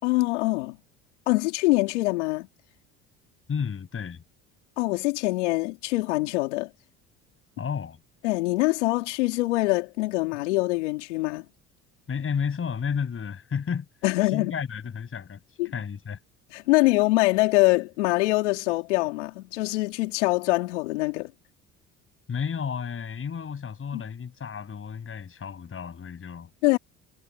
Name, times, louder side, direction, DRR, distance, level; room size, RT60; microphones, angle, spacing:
voice 1, 0.0-0.8 1.3-2.5 4.8-6.7 8.2-11.5 14.0-14.5 15.6-15.7 16.5-21.3 23.9-24.0 26.6-26.8, left 21 dB, 85° left, 3.6 m, -24 dB
voice 2, 3.5-4.2 7.6-8.0 12.1-13.9 14.3-15.4 15.7-16.2 22.3-26.5, left 6 dB, 35° left, 7.6 m, -32 dB
hypercardioid pair, 70°, 35 cm